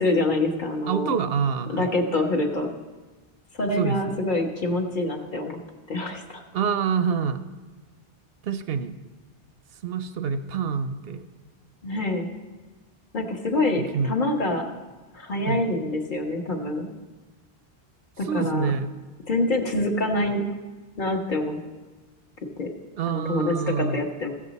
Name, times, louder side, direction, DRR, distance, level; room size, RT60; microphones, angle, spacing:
voice 1, 0.0-1.1 1.7-2.7 3.6-5.6 5.9-6.4 11.8-12.3 13.1-14.7 15.1-16.9 18.2-18.7 19.3-20.5 21.0-21.6 22.6-22.7 23.0-24.3, left 2 dB, 50° left, 2 dB, 1.2 m, -26 dB
voice 2, 0.9-1.9 3.8-4.2 6.5-7.4 8.4-8.9 9.8-11.2 13.7-14.2 15.4-15.7 18.2-18.9 23.0-24.1, right 6 dB, 70° right, 10 dB, 0.8 m, -26 dB
15.0 x 7.4 x 4.0 m, 1.3 s
omnidirectional pair, 1.0 m